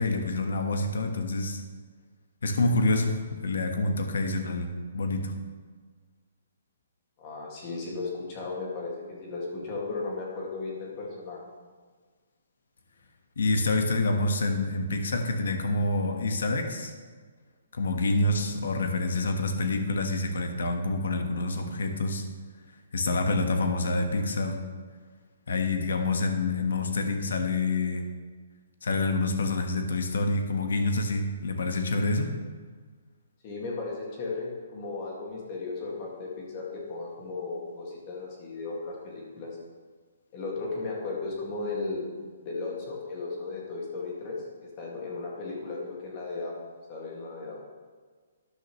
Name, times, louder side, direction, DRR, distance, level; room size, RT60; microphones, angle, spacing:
voice 1, 0.0-1.6 2.4-5.3 13.4-16.9 17.7-22.2 22.9-24.6 25.5-28.1 28.8-32.3, left 2 dB, 70° left, 5 dB, 1.4 m, -27 dB
voice 2, 7.2-11.4 33.4-39.5 40.3-42.1 42.4-46.5 46.9-47.6, left 3 dB, 25° left, -3 dB, 2.1 m, -35 dB
13.0 x 10.0 x 3.2 m, 1.5 s
hypercardioid pair, 180°, 0 cm